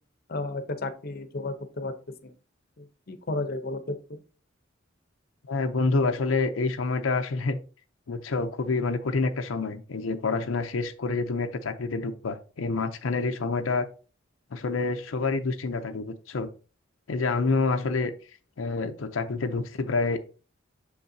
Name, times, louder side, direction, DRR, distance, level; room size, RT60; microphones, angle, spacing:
voice 1, 0.3-1.9 2.2-2.3 2.8-4.2, left 2 dB, 50° left, 9 dB, 0.7 m, -33 dB
voice 2, 5.5-7.6 8.1-13.9 14.5-16.5 17.1-18.1 18.6-20.2, left 3 dB, 90° left, 6 dB, 0.6 m, -27 dB
6.6 x 5.4 x 2.7 m, 0.35 s
head